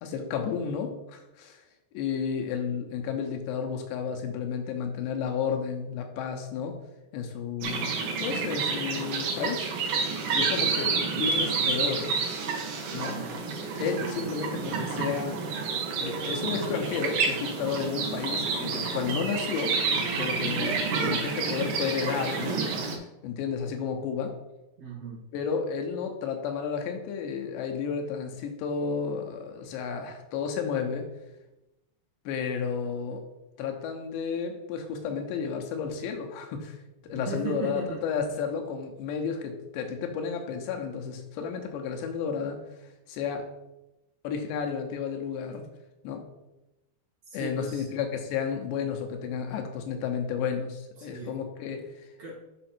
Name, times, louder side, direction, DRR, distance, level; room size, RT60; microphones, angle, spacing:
voice 1, 0.0-1.6 1.9-6.8 7.1-7.9 8.2-9.7 10.3-12.2 12.9-13.2 13.8-15.4 16.0-19.8 20.2-22.6 22.9-24.4 25.3-31.1 32.3-33.2 33.6-43.5 44.2-45.7 46.0-46.3 47.3-52.1, left 6 dB, 80° left, 3 dB, 3.0 m, -32 dB
sound 1, 7.6-22.9, right 4 dB, 65° right, 2.2 m, -29 dB
voice 2, 12.9-13.3 24.8-25.2 37.1-38.0 47.3-47.9 51.0-51.3 52.2-52.4, right 3 dB, 50° right, -6 dB, 2.8 m, -37 dB
7.6 x 5.5 x 4.4 m, 0.96 s
omnidirectional pair, 5.0 m